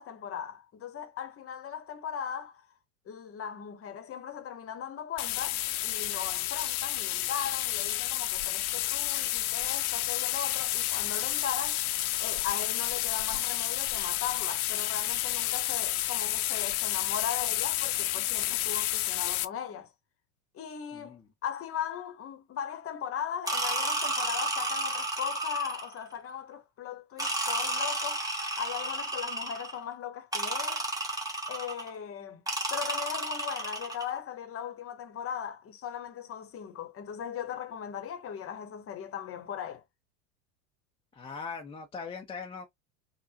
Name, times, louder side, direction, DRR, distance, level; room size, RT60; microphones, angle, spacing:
voice 1, 0.0-2.7 3.1-11.8 12.2-19.9 20.5-28.2 28.6-30.8 31.5-32.4 32.7-39.8, left 8 dB, 30° left, 1.0 m, -38 dB
sound 1, 5.2-19.4, left 15 dB, 60° left, 0.7 m, -30 dB
sound 2, 23.5-26.0 27.2-29.8 30.3-31.9 32.5-34.1, right 2 dB, 5° right, 1.3 m, -32 dB
voice 2, 41.1-42.7, left 5 dB, 10° left, 0.5 m, -40 dB
5.3 x 2.2 x 2.8 m
figure-of-eight pair, 80°, 48 cm